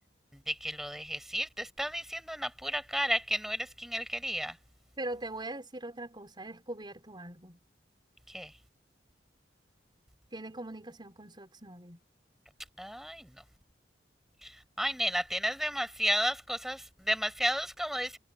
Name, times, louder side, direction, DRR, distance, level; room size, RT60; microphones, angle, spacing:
voice 1, 0.3-4.6 8.3-8.5 12.8-13.4 14.4-18.2, equal, ahead, 5.8 m, -33 dB
voice 2, 5.0-7.6 10.3-12.0, right 1 dB, 25° right, 5.5 m, -41 dB
head